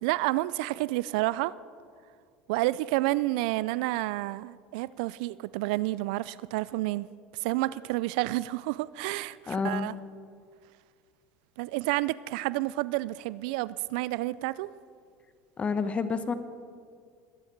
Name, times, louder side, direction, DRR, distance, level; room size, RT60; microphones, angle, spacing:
voice 1, 0.0-1.5 2.5-7.1 7.4-10.0 11.6-14.7, right 18 dB, 75° right, 19 dB, 0.3 m, -30 dB
voice 2, 9.5-9.9 15.6-16.3, left 5 dB, 30° left, 11 dB, 1.0 m, -29 dB
21.0 x 9.8 x 4.6 m, 2.1 s
hypercardioid pair, 90°, 4 cm